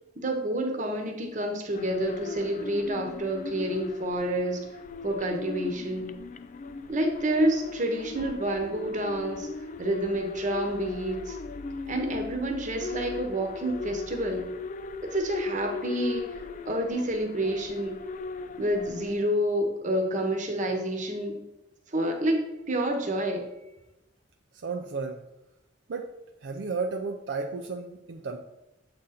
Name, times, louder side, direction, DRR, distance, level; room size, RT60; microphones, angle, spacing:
voice 1, 0.1-4.6 5.0-6.1 6.9-9.5 9.8-11.4 11.9-14.4 15.0-16.2 16.6-18.0 18.6-21.4 21.9-22.4 22.7-23.5, right 1 dB, 40° right, 3 dB, 1.0 m, -28 dB
sound 1, 1.7-19.1, left 4 dB, 40° left, 0.3 m, -38 dB
voice 2, 24.5-25.3 25.9-26.1 26.4-28.4, right 4 dB, 65° right, 3 dB, 0.5 m, -33 dB
7.7 x 3.9 x 4.2 m, 0.92 s
head